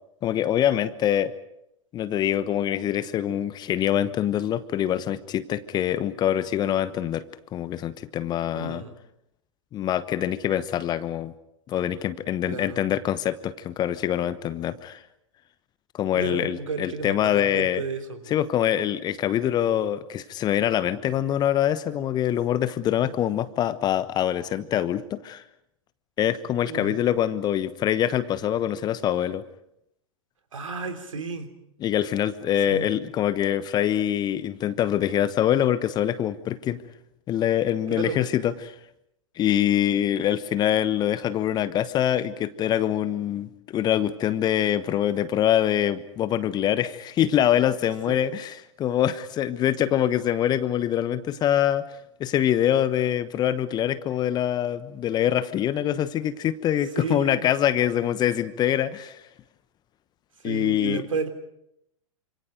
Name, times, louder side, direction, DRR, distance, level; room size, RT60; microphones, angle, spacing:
voice 1, 0.2-1.3 1.9-7.2 7.5-8.8 9.7-11.3 11.7-15.0 15.9-17.8 18.3-25.4 26.2-29.4 31.8-36.8 37.3-38.7 39.4-51.8 52.2-59.2 60.4-61.0, left 11 dB, 25° left, 15 dB, 1.1 m, -24 dB
voice 2, 8.5-8.9 12.4-12.8 16.1-18.3 26.7-27.1 30.5-31.5 32.7-32.9 37.9-38.2 48.1-48.2 57.0-57.4 60.4-61.3, right 4 dB, 70° right, 7 dB, 3.4 m, -32 dB
28.5 x 26.5 x 5.2 m, 0.80 s
figure-of-eight pair, 100°, 18 cm